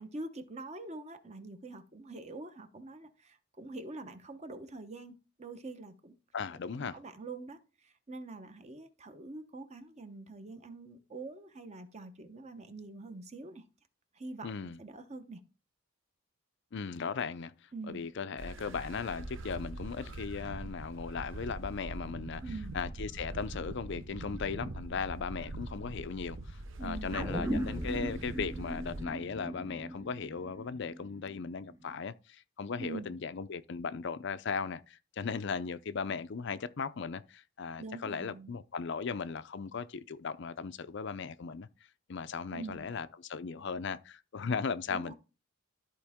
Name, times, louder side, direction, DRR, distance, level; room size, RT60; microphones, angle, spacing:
voice 1, 0.0-6.1 6.7-13.6 14.1-15.4 17.7-18.0 22.4-22.7 26.8-27.7 32.8-33.1 37.8-38.5 42.5-42.9 44.9-45.1, right 2 dB, 30° right, 0.9 m, -45 dB
voice 2, 6.3-7.0 14.4-14.8 16.7-17.5 17.9-22.4 22.7-41.7 42.1-45.1, left 5 dB, 55° left, 0.5 m, -37 dB
sound 1, 18.4-29.0, right 1 dB, 60° right, 0.8 m, -43 dB
sound 2, 27.1-31.7 32.0-32.1, equal, 10° right, 0.5 m, -38 dB
13.0 x 4.5 x 3.6 m
head